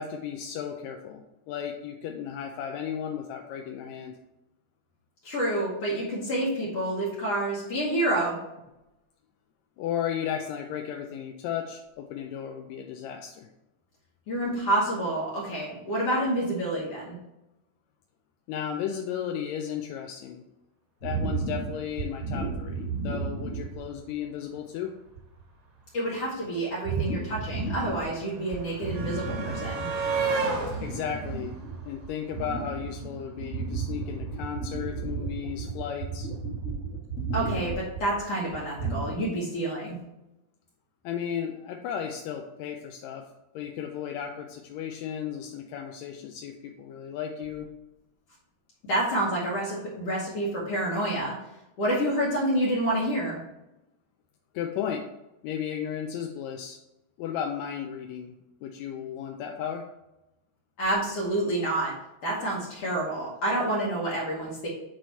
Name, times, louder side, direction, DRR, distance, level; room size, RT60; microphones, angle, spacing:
voice 1, 0.0-4.2 9.8-13.5 18.5-20.4 21.0-24.9 30.8-31.6 31.8-36.3 41.0-43.3 43.5-47.7 54.5-55.1 55.4-56.8 57.2-58.3 58.6-59.9, left 8 dB, 80° left, 3 dB, 1.7 m, -34 dB
voice 2, 5.2-8.4 14.3-17.2 25.9-29.9 37.3-40.0 48.9-51.4 51.8-53.4 60.8-61.9 62.2-64.7, right 1 dB, 60° left, -5 dB, 2.0 m, -28 dB
sound 1, 21.0-24.1 24.6-24.7 25.1-25.4 26.8-28.2 28.5-30.2 30.5-39.2, right 4 dB, 35° left, 1.4 m, -33 dB
sound 2, 26.1-26.2 26.4-32.6 33.8-33.9 34.2-34.3, right 4 dB, 75° right, 3.2 m, -33 dB
7.7 x 3.1 x 4.0 m, 0.94 s
omnidirectional pair, 3.4 m